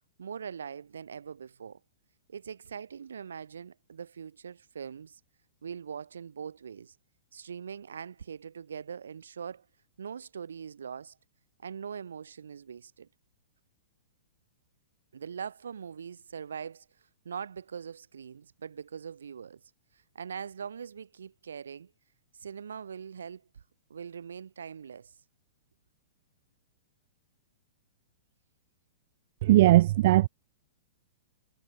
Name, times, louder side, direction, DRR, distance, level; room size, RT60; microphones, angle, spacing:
voice 1, 0.2-1.8 2.3-5.2 5.6-7.0 7.3-9.7 10.0-11.2 11.6-13.1 15.1-19.6 19.9-21.9 22.3-23.6 23.9-25.1, right 7 dB, 75° right, 3.7 m, -42 dB
voice 2, 29.4-30.3, right 16 dB, 55° right, 0.5 m, -19 dB
hypercardioid pair, 115°, 0 cm